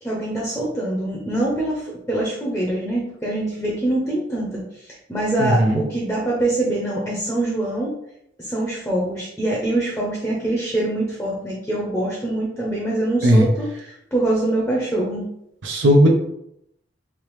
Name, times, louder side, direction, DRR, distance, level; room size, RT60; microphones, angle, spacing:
voice 1, 0.0-7.9 8.4-15.3, right 1 dB, 5° left, -4 dB, 0.6 m, -24 dB
voice 2, 5.4-5.8 13.2-13.5 15.6-16.1, equal, 70° right, 2 dB, 0.6 m, -15 dB
3.4 x 2.8 x 3.1 m, 0.78 s
head